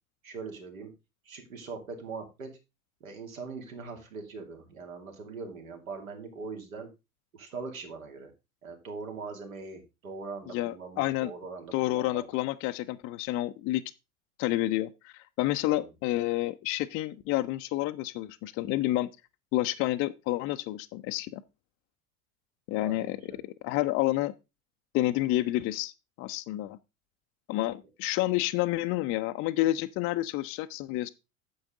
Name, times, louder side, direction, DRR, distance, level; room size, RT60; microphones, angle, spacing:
voice 1, 0.2-0.9 1.2-2.5 3.0-6.9 7.3-8.3 8.6-12.3 15.6-15.9 22.7-23.4, right 4 dB, 70° right, 2.8 m, -41 dB
voice 2, 10.5-11.3 11.7-13.8 14.4-19.1 19.5-21.4 22.7-24.3 24.9-25.9 26.2-26.8 27.5-31.1, left 16 dB, 30° left, 0.5 m, -29 dB
9.2 x 7.1 x 3.8 m
figure-of-eight pair, 85°, 43 cm